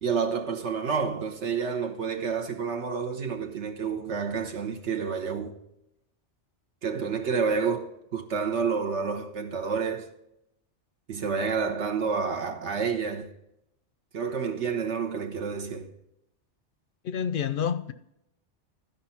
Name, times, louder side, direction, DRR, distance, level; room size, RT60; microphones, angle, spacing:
voice 1, 0.0-5.6 6.8-10.1 11.1-13.3 14.1-15.9, right 5 dB, 75° right, 1.3 m, -29 dB
voice 2, 17.0-17.9, left 8 dB, 60° left, 0.6 m, -28 dB
13.0 x 5.4 x 5.7 m
omnidirectional pair, 1.2 m